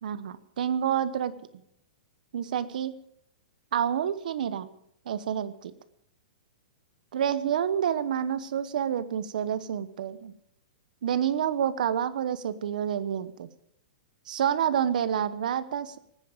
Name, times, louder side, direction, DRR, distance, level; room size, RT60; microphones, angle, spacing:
voice 1, 0.0-1.4 2.3-2.9 3.7-4.7 5.1-5.7 7.1-10.3 11.0-13.5 14.3-16.0, right 9 dB, 60° right, 14 dB, 1.1 m, -28 dB
18.0 x 10.0 x 7.2 m, 0.74 s
hypercardioid pair, 175°, 5 cm